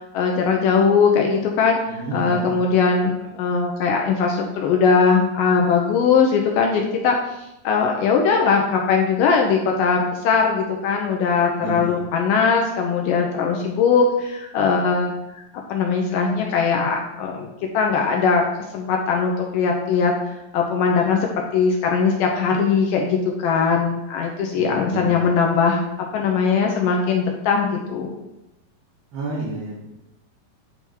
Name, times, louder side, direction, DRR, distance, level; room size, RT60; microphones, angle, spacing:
voice 1, 0.1-1.8 2.1-15.4 15.7-17.5 17.7-18.4 18.7-20.1 20.5-25.8 26.1-28.1, left 5 dB, 75° left, 1 dB, 2.0 m, -20 dB
voice 2, 1.8-2.6 11.6-12.0 24.5-25.3 29.1-29.8, right 3 dB, 85° right, -13 dB, 4.9 m, -30 dB
9.6 x 3.5 x 4.5 m, 0.92 s
omnidirectional pair, 4.6 m